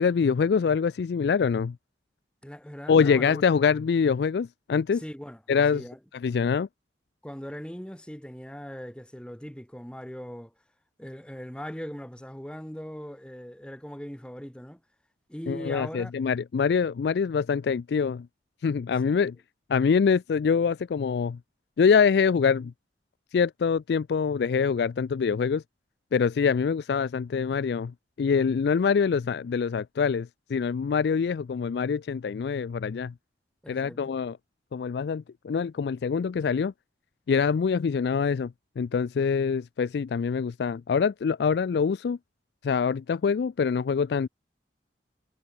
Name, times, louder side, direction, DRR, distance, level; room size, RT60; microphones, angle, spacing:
voice 1, 0.0-1.8 2.9-5.0 5.5-5.8 6.2-6.7 15.5-18.3 18.6-19.4 19.7-21.4 21.8-22.7 23.3-25.6 26.1-33.1 33.7-34.4 34.7-36.7 37.3-42.2 42.6-44.3, left 6 dB, 70° left, 0.3 m, -25 dB
voice 2, 2.4-3.4 4.9-5.4 5.7-6.0 7.2-10.5 11.0-14.8 15.3-16.1 33.6-34.0, equal, 5° left, 1.1 m, -40 dB
head